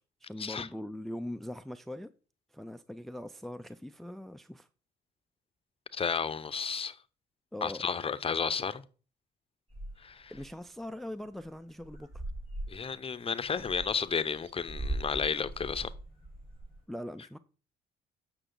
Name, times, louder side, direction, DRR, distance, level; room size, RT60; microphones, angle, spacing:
voice 1, 0.0-2.1 2.5-4.7 7.5-7.8 10.3-12.2 16.9-17.4, left 1 dB, ahead, 0.4 m, -41 dB
voice 2, 5.9-7.0 7.6-8.8 10.0-10.3 12.7-15.9, left 6 dB, 30° left, 0.7 m, -32 dB
sound 1, 9.7-10.5 10.9-11.0 11.2-11.5 11.8-16.8, right 1 dB, 30° right, 4.1 m, -41 dB
8.0 x 6.0 x 3.8 m
cardioid pair, 85°, 19 cm